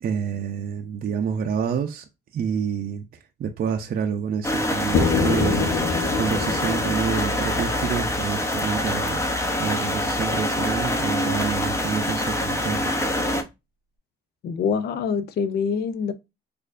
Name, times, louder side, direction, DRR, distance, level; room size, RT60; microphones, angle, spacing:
voice 1, 0.0-2.0 2.3-3.1 3.4-5.7 6.2-9.2 9.6-12.9, right 7 dB, 50° right, 0.5 m, -28 dB
sound 1, 4.4-13.4, left 1 dB, 15° left, 0.6 m, -25 dB
sound 2, 4.9-8.8, left 5 dB, 70° left, 0.9 m, -26 dB
sound 3, 7.1-12.3, left 1 dB, 35° left, 1.4 m, -43 dB
voice 2, 14.4-16.1, left 6 dB, 55° left, 0.4 m, -25 dB
4.3 x 2.5 x 2.4 m
cardioid pair, 90°, 20 cm